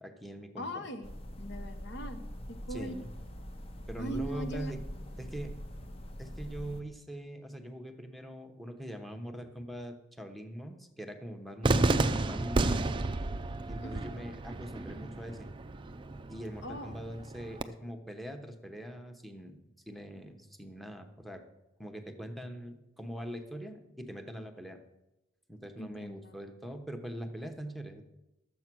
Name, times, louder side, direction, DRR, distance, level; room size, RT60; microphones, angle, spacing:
voice 1, 0.0-0.9 2.7-3.1 3.9-4.8 5.2-5.6 6.2-13.0 13.7-15.5 16.3-19.6 19.9-21.4 21.8-24.8 25.5-28.0, equal, ahead, 5 dB, 0.9 m, -42 dB
voice 2, 0.6-1.1 1.4-3.0 4.0-4.7 13.8-14.1 16.6-17.0 25.8-26.4, equal, 60° left, 8 dB, 1.0 m, -40 dB
sound 1, 1.0-6.8, equal, 30° left, 0.8 m, -43 dB
Cheering / Fireworks, 11.6-17.6, right 2 dB, 25° right, 0.4 m, -32 dB
12.5 x 7.7 x 6.1 m, 0.96 s
head